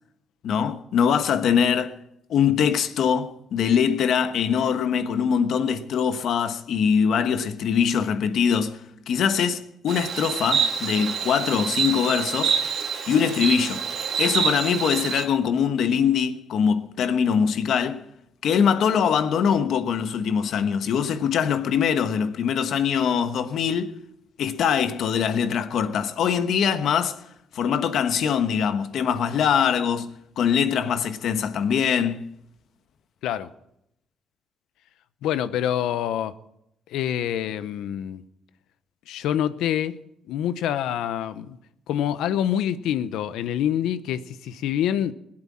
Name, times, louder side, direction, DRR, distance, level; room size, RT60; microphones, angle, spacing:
voice 1, 0.4-2.0 2.3-12.6 13.1-13.8 14.2-18.0 18.4-23.9 24.4-27.2 27.5-32.2, left 7 dB, 70° left, 1.2 m, -23 dB
Insect, 9.9-15.2, right 6 dB, 70° right, 2.2 m, -26 dB
voice 2, 35.2-36.3 36.9-38.2 39.1-40.0 40.3-41.6 41.9-45.1, left 10 dB, 90° left, 0.8 m, -26 dB
20.0 x 8.8 x 7.4 m
cardioid pair, 90°, 0 cm